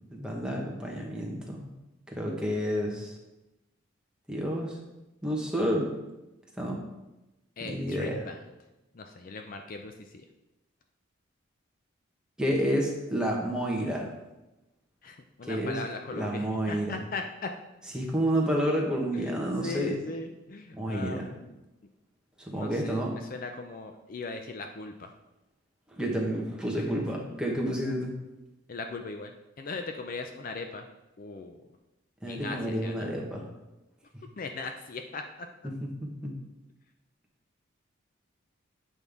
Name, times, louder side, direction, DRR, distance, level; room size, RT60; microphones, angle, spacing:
voice 1, 0.1-1.7 2.1-3.2 4.3-4.8 5.2-5.9 6.6-6.9 7.6-8.2 12.4-14.1 15.4-15.8 16.1-17.0 17.9-20.0 20.7-21.2 22.4-23.1 25.9-28.1 32.2-33.5 35.6-36.3, equal, 5° right, -1 dB, 1.1 m, -30 dB
voice 2, 7.6-8.4 8.9-10.2 15.0-17.5 19.1-21.6 22.5-25.1 26.9-27.3 28.7-30.9 31.2-31.6 32.3-33.1 34.4-35.5, left 3 dB, 45° left, 5 dB, 0.4 m, -39 dB
8.3 x 5.4 x 3.5 m, 0.98 s
head